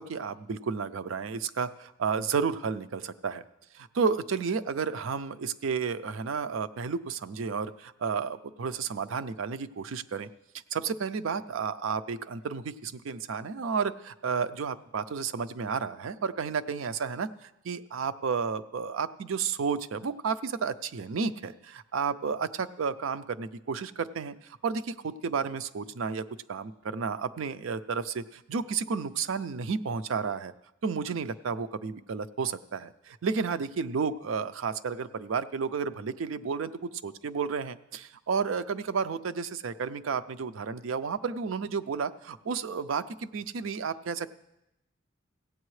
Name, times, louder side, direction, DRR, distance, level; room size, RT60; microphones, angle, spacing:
voice 1, 0.0-3.4 3.7-10.3 10.7-24.3 24.6-30.5 30.8-44.3, right 5 dB, 70° right, 12 dB, 0.4 m, -32 dB
17.0 x 8.4 x 3.2 m, 0.89 s
head